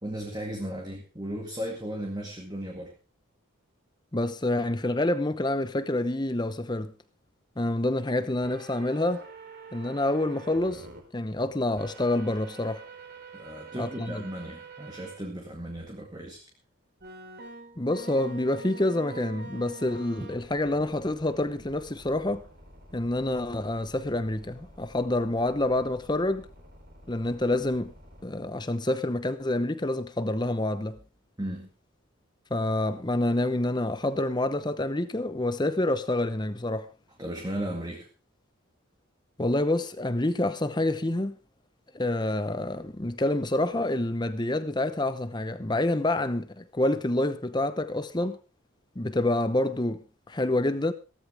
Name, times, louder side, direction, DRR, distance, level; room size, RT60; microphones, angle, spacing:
voice 1, 0.0-2.9 13.3-16.5 31.4-31.7 37.2-38.1 48.2-48.3, right 1 dB, 20° right, 2.1 m, -36 dB
voice 2, 4.1-6.9 7.6-9.2 9.7-10.9 11.1-12.8 13.8-14.2 17.8-22.4 22.9-26.5 27.1-27.9 28.2-31.0 32.5-36.9 39.4-41.4 41.9-48.4 49.0-50.9, left 1 dB, 20° left, 0.8 m, -27 dB
sound 1, 8.4-11.0 11.8-15.2 15.7-15.8 17.0-28.2, right 3 dB, 50° right, 4.3 m, -47 dB
16.5 x 14.0 x 3.4 m
head